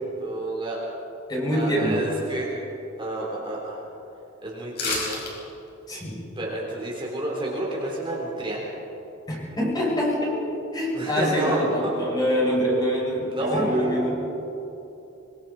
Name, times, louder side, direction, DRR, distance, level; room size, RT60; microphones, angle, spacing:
voice 1, 0.2-0.8 1.5-2.5 3.0-3.8 4.4-5.3 6.4-8.6 10.9-12.0 13.3-14.1, right 1 dB, 25° right, -4 dB, 3.8 m, -29 dB
voice 2, 1.3-2.0 5.9-6.2 9.3-10.4 10.7-14.2, equal, 20° left, -5 dB, 6.6 m, -25 dB
sound 1, 4.7-5.3 5.7-5.8, left 3 dB, 55° left, 5.3 m, -28 dB
24.5 x 24.0 x 4.4 m, 3.0 s
head